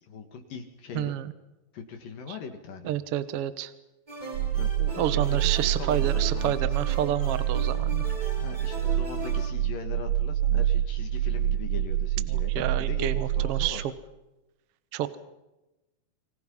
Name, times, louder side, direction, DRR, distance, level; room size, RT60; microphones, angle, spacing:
voice 1, 0.0-1.1 1.7-2.9 4.5-6.5 8.4-13.8, left 5 dB, 60° left, 5 dB, 3.4 m, -40 dB
voice 2, 0.9-1.3 2.3-2.4 2.8-3.7 5.0-8.0 12.3-13.8 14.9-15.2, right 11 dB, 65° right, 13 dB, 1.5 m, -29 dB
sound 1, 4.1-9.5, right 1 dB, 10° right, 3.8 m, -40 dB
sound 2, 4.3-13.7, right 11 dB, 80° right, 3.4 m, -27 dB
29.5 x 25.0 x 5.6 m, 1.0 s
omnidirectional pair, 4.6 m